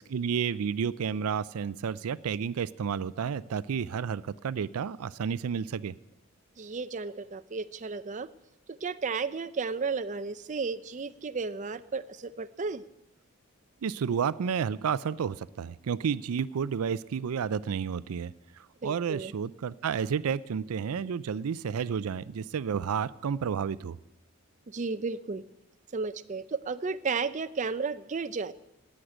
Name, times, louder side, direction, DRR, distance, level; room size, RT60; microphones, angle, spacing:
voice 1, 0.1-5.9 13.8-24.0, right 7 dB, 90° right, 18 dB, 0.4 m, -31 dB
voice 2, 6.6-8.3 8.8-12.8 18.8-19.3 24.7-25.4 25.9-28.5, right 4 dB, 35° right, 12 dB, 0.5 m, -33 dB
16.5 x 6.5 x 9.9 m, 0.90 s
head